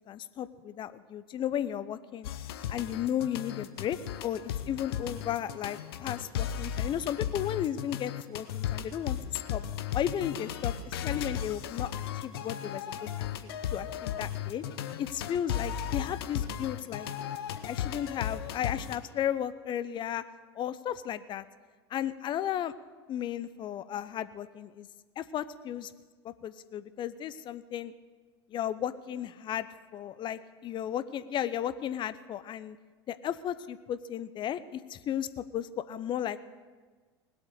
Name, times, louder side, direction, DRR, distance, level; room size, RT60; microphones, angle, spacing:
voice 1, 0.1-2.3 2.7-9.6 9.9-10.8 11.0-11.9 12.2-12.8 13.2-14.6 15.0-17.1 17.6-20.2 20.6-21.4 21.9-22.7 23.1-24.9 25.2-25.9 26.2-27.9 28.5-29.7 29.9-32.8 33.1-36.4, left 10 dB, 35° left, 14 dB, 0.8 m, -34 dB
sound 1, 2.2-19.0, left 9 dB, 70° left, 1.0 m, -35 dB
20.0 x 8.1 x 6.6 m, 1.4 s
hypercardioid pair, 80°, 14 cm